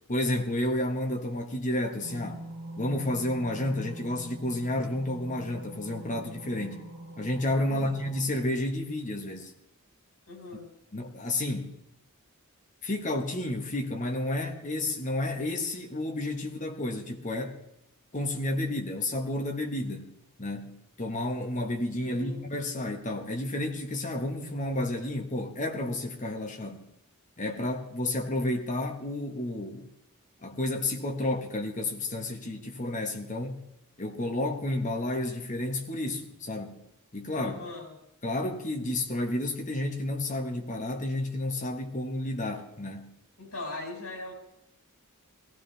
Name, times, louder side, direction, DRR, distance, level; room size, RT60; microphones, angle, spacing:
voice 1, 0.1-2.4 2.8-6.9 7.2-9.5 10.9-11.7 12.8-17.6 18.1-20.1 20.4-26.9 27.4-29.9 30.4-33.6 34.0-36.8 37.1-37.6 38.2-43.1, left 1 dB, 35° left, 1.5 m, -31 dB
sound 1, 2.0-8.2, right 1 dB, 55° right, 3.4 m, -43 dB
voice 2, 7.7-8.0 10.3-10.7 22.1-22.5 37.4-37.9 43.4-44.3, left 2 dB, 75° left, 5.2 m, -40 dB
17.5 x 15.5 x 3.4 m
head